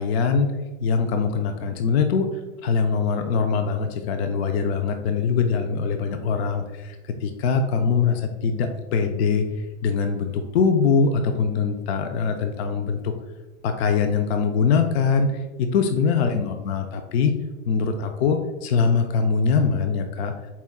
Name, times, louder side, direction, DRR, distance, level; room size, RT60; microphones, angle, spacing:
voice 1, 0.0-9.4 9.8-13.1 13.6-17.3 17.7-20.3, left 5 dB, 55° left, 6 dB, 0.4 m, -23 dB
4.2 x 2.3 x 3.5 m, 1.1 s
hypercardioid pair, 140°, 38 cm